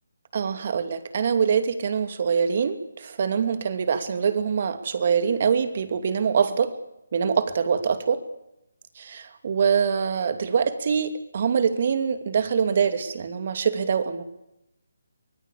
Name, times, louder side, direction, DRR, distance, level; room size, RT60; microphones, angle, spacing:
voice 1, 0.3-6.7 7.1-8.2 9.0-14.2, right 6 dB, 45° right, 10 dB, 2.6 m, -24 dB
24.5 x 19.5 x 8.6 m, 0.85 s
figure-of-eight pair, 160°, 0 cm